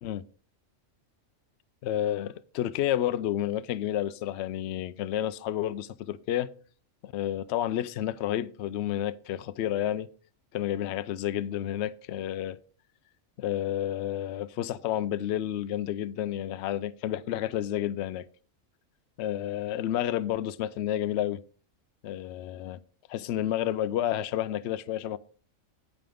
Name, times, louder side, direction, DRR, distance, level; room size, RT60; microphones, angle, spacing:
voice 1, 1.8-6.5 7.0-10.1 10.5-12.6 13.4-18.2 19.2-21.4 22.0-22.8 23.1-25.2, left 12 dB, 65° left, 0.7 m, -30 dB
9.1 x 8.6 x 3.5 m
omnidirectional pair, 1.4 m